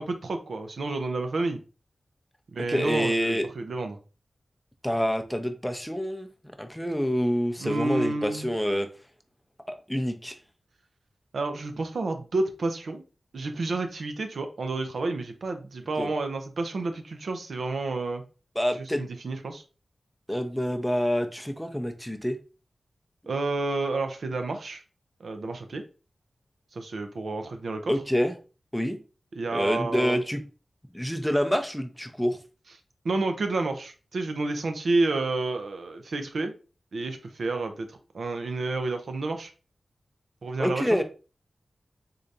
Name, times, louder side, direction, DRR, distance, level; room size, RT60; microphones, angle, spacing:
voice 1, 0.0-1.6 2.5-4.0 7.6-8.5 11.3-13.0 13.3-18.2 18.8-19.6 23.3-24.8 25.2-25.8 26.7-27.9 29.4-30.2 33.0-36.5 36.9-39.5 40.4-41.0, right 3 dB, 80° right, 0.6 m, -30 dB
voice 2, 2.7-3.5 4.8-6.3 6.6-8.9 9.7-10.4 16.0-16.1 18.6-19.1 20.3-22.4 27.9-28.3 28.7-29.0 29.5-30.4 30.9-32.4 40.6-41.0, equal, 5° left, 0.5 m, -27 dB
3.8 x 3.3 x 2.6 m
wide cardioid pair, 85°, 0 cm